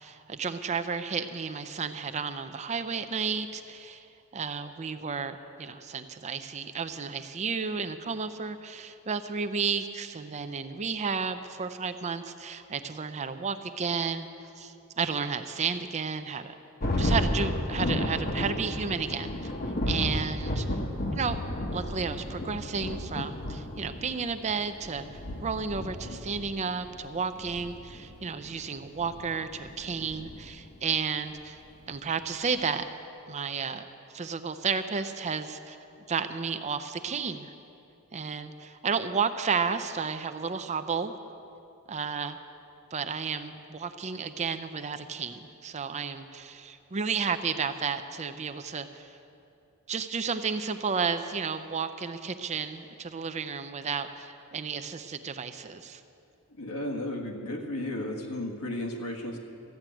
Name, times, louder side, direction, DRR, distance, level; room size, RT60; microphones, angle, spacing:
voice 1, 0.0-14.3 14.6-16.5 17.0-19.5 19.9-20.7 21.1-21.4 21.7-25.1 25.4-31.6 31.9-32.8 33.3-33.9 34.1-35.8 36.1-37.5 38.1-41.1 41.9-42.4 42.9-49.1 49.9-56.0, right 5 dB, 30° right, 9 dB, 0.5 m, -32 dB
Thunder, 16.8-30.8, left 1 dB, 40° left, 1.0 m, -33 dB
voice 2, 56.6-59.4, left 1 dB, 80° left, 1 dB, 1.6 m, -34 dB
14.0 x 7.2 x 9.0 m, 2.8 s
head